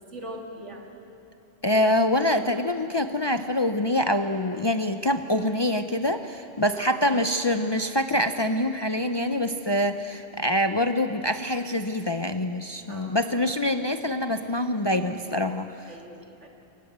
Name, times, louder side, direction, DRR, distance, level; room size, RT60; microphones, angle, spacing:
voice 1, 0.1-1.0 6.7-7.1 12.9-13.4 15.9-16.5, right 1 dB, 90° right, 1 dB, 2.8 m, -41 dB
voice 2, 1.6-15.7, left 1 dB, 35° left, 8 dB, 0.5 m, -25 dB
23.0 x 18.5 x 8.0 m, 2.8 s
omnidirectional pair, 1.2 m